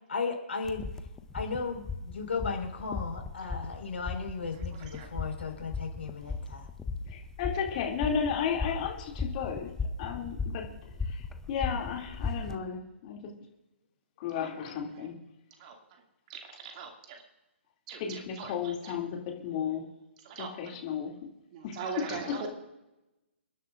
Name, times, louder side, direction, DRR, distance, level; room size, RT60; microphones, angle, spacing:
voice 1, 0.1-0.9 1.3-6.7, left 4 dB, 65° left, 3 dB, 5.0 m, -35 dB
sound 1, 0.6-12.6, left 4 dB, 10° left, 0.7 m, -37 dB
voice 2, 7.1-9.7 10.0-10.7 11.0-13.3 14.2-15.2 18.0-19.9 20.4-21.1 21.6-21.8 22.1-22.5, left 7 dB, 35° left, 1 dB, 2.6 m, -34 dB
voice 3, 16.3-17.2 17.9-18.9 20.2-20.8 21.5-22.5, right 6 dB, 35° right, 2 dB, 2.4 m, -41 dB
28.5 x 11.0 x 2.6 m, 0.98 s
figure-of-eight pair, 135°, 7 cm